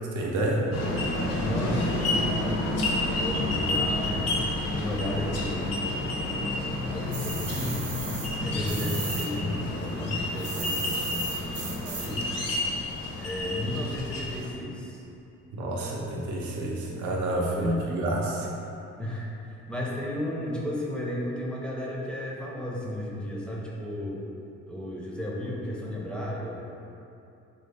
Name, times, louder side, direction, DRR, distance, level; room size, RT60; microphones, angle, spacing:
voice 1, 0.1-0.6 15.5-18.5, right 1 dB, 75° right, -2 dB, 0.7 m, -28 dB
sound 1, 0.7-14.5, left 2 dB, 60° left, 0.6 m, -29 dB
voice 2, 1.3-2.7 3.2-4.4 4.8-6.5 6.9-7.8 8.3-12.5 13.2-15.0 17.5-18.1 19.0-24.2 24.7-26.6, left 1 dB, 5° left, -4 dB, 0.5 m, -34 dB
sound 2, 7.1-9.3 9.6-12.3, right 4 dB, 40° right, 0.7 m, -36 dB
4.0 x 2.0 x 3.4 m, 2.7 s
cardioid pair, 90°, 30 cm